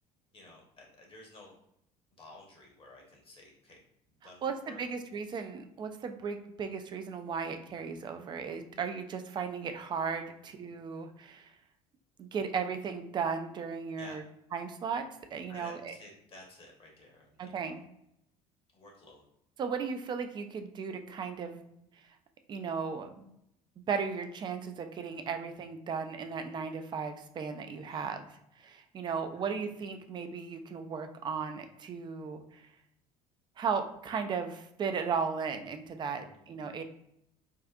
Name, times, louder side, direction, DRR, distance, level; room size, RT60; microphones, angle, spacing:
voice 1, 0.3-1.5 2.2-3.8 4.2-4.8 10.2-10.5 14.0-14.2 15.5-17.8 18.7-19.2 27.9-28.1 29.2-29.4 36.2-36.4, left 2 dB, 30° left, 0 dB, 0.9 m, -53 dB
voice 2, 4.4-11.5 12.2-14.2 14.5-15.9 17.4-17.8 19.6-21.6 22.5-23.3 23.9-32.7 33.6-36.8, right 6 dB, 25° right, 7 dB, 0.3 m, -36 dB
3.6 x 2.4 x 2.3 m, 0.77 s
figure-of-eight pair, 60°, 20 cm